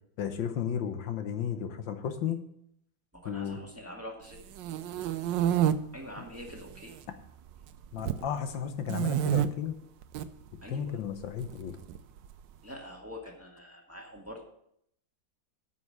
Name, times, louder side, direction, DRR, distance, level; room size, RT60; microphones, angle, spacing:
voice 1, 0.2-2.4 3.2-3.6 7.9-9.8 10.7-11.8, left 8 dB, 75° left, 8 dB, 1.6 m, -33 dB
voice 2, 3.1-4.4 5.9-7.0 10.6-11.0 12.6-14.4, left 1 dB, 10° right, 0 dB, 1.6 m, -45 dB
sound 1, 4.3-5.7 6.4-7.0 7.3-8.2 8.9-9.5 10.0-10.3 11.4-12.3, right 11 dB, 75° right, 1.3 m, -28 dB
9.5 x 6.2 x 7.7 m, 0.72 s
omnidirectional pair, 2.1 m